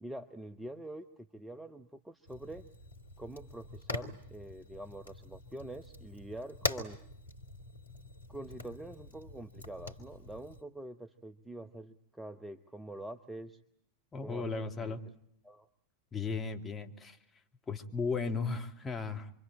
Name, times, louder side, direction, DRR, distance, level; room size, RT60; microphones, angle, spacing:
voice 1, 0.0-1.1 1.3-2.7 3.2-7.0 8.3-13.6 14.2-14.5 14.8-15.0 15.4-15.7, right 1 dB, 5° right, 7 dB, 1.1 m, -45 dB
Fire, 2.3-10.6, left 2 dB, 75° left, 2.7 m, -43 dB
voice 2, 14.1-15.0 16.1-17.2 17.7-19.3, left 4 dB, 15° left, 3 dB, 2.6 m, -35 dB
27.0 x 24.5 x 8.9 m, 0.71 s
figure-of-eight pair, 90°, 0 cm